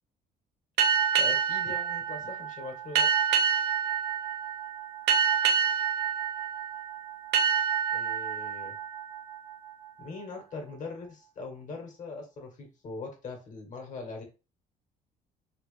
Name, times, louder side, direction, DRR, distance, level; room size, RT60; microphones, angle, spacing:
sound 1, 0.8-10.1, right 7 dB, 80° right, 0.8 m, -28 dB
voice 1, 1.2-3.1 7.9-8.8 10.0-14.2, left 3 dB, 50° left, 3 dB, 1.3 m, -41 dB
3.1 x 3.0 x 3.2 m, 0.30 s
cardioid pair, 110°, 17 cm